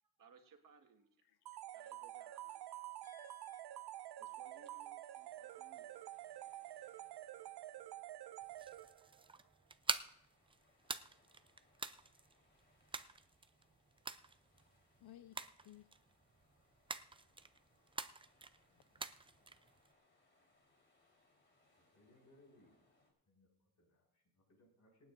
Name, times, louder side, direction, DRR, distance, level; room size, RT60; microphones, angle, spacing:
voice 1, 0.0-1.2 1.7-2.8 4.0-6.5, right 5 dB, 60° right, 5 dB, 1.6 m, -65 dB
voice 2, 1.2-1.6 3.0-3.6 15.0-15.9 18.7-18.8, left 12 dB, 75° left, 10 dB, 0.7 m, -60 dB
sound 1, 1.5-9.2, right 14 dB, 85° right, 0.8 m, -49 dB
sound 2, 5.2-23.1, left 2 dB, 30° left, 3.8 m, -76 dB
sound 3, 8.4-19.9, right 4 dB, 15° right, 0.4 m, -47 dB
voice 3, 21.8-22.9 23.3-25.1, left 1 dB, 50° left, 0 dB, 6.2 m, -69 dB
27.0 x 9.3 x 2.6 m, 0.78 s
cardioid pair, 115°, 38 cm